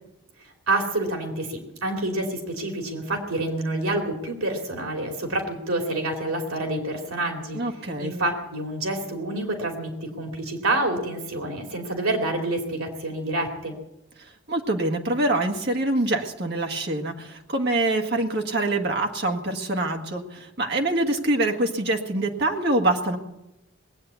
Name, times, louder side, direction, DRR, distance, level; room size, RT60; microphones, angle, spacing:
voice 1, 0.4-7.6 8.0-13.7, right 2 dB, 85° right, 2 dB, 2.8 m, -28 dB
voice 2, 7.5-8.1 14.5-23.2, right 2 dB, 50° right, 3 dB, 1.7 m, -25 dB
19.5 x 8.6 x 8.3 m, 0.92 s
head